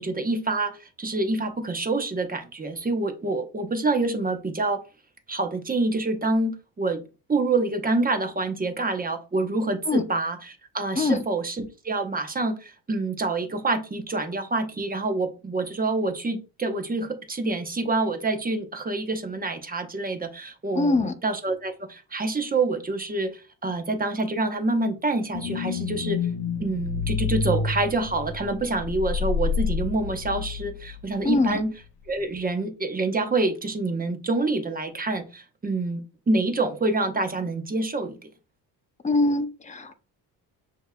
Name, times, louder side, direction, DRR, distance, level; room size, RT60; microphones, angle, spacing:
voice 1, 0.0-4.8 5.3-7.0 7.3-26.2 26.6-31.7 32.1-38.3, right 3 dB, 20° right, 6 dB, 0.9 m, -27 dB
voice 2, 20.7-21.1 31.2-31.6 39.0-40.0, left 3 dB, 20° left, 9 dB, 0.6 m, -23 dB
sound 1, 25.3-31.0 31.3-31.4, left 6 dB, 70° left, 0.7 m, -28 dB
6.4 x 2.9 x 2.2 m, 0.32 s
cardioid pair, 90°, 41 cm